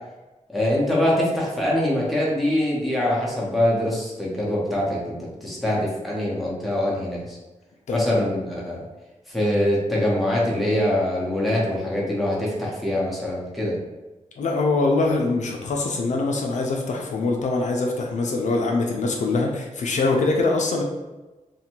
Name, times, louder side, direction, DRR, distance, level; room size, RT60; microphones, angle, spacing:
voice 1, 0.5-7.4 7.9-8.8 9.3-13.8, left 1 dB, ahead, -6 dB, 0.6 m, -23 dB
voice 2, 14.4-20.8, left 3 dB, 65° left, 0 dB, 0.4 m, -23 dB
2.6 x 2.2 x 2.8 m, 1.1 s
wide cardioid pair, 155°, 13 cm